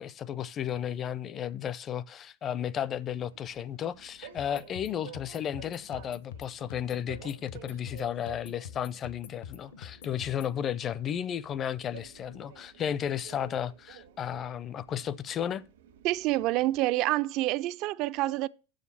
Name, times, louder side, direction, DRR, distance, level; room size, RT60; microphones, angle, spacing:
voice 1, 0.0-15.6, left 9 dB, 35° left, 0.5 m, -33 dB
Train, 2.8-16.8, right 9 dB, 85° right, 1.5 m, -52 dB
sound 1, 4.4-10.6, left 8 dB, 80° left, 1.0 m, -46 dB
voice 2, 16.0-18.5, right 17 dB, 55° right, 0.4 m, -27 dB
6.9 x 6.4 x 7.0 m
hypercardioid pair, 110°, 0 cm